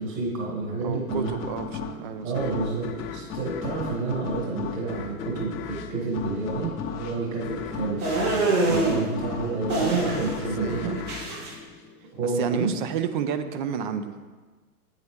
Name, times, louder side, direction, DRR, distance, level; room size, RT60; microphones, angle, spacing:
voice 1, 0.0-1.4 2.2-10.9 12.1-12.7, right 3 dB, 55° right, -4 dB, 2.8 m, -30 dB
voice 2, 0.8-2.3 10.6-10.9 12.4-14.1, right 7 dB, 35° right, 9 dB, 0.5 m, -30 dB
sound 1, 1.1-12.4, left 6 dB, 35° left, 0.7 m, -35 dB
sound 2, 8.0-9.0 9.7-10.4 10.7-11.5, right 3 dB, 70° right, 2.3 m, -24 dB
8.6 x 8.0 x 3.5 m, 1.4 s
figure-of-eight pair, 100°, 45 cm